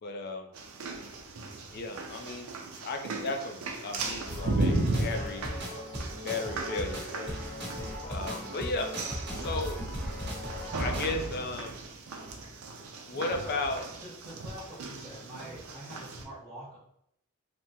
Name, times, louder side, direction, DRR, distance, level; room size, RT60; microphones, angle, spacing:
voice 1, 0.0-0.5 1.7-2.5 2.8-5.5 6.1-7.3 7.7-8.9 9.4-9.8 10.8-11.8 13.1-13.8, left 2 dB, 50° left, 5 dB, 0.4 m, -35 dB
sound 1, 0.5-16.2, right 2 dB, 85° right, 0.5 m, -36 dB
sound 2, 4.3-11.1, equal, 55° right, 0.9 m, -37 dB
voice 2, 13.1-13.6 14.0-16.8, right 1 dB, 20° right, -12 dB, 1.1 m, -45 dB
3.4 x 2.0 x 2.8 m, 0.75 s
head